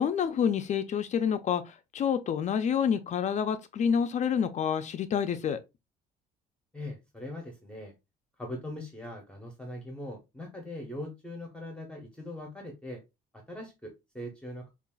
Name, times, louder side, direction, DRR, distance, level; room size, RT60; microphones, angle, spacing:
voice 1, 0.0-5.6, left 7 dB, 45° left, 0.4 m, -28 dB
voice 2, 6.7-7.9 8.4-13.0 13.3-14.7, left 1 dB, 5° left, 0.9 m, -41 dB
5.3 x 2.4 x 2.3 m
cardioid pair, 110°, 17 cm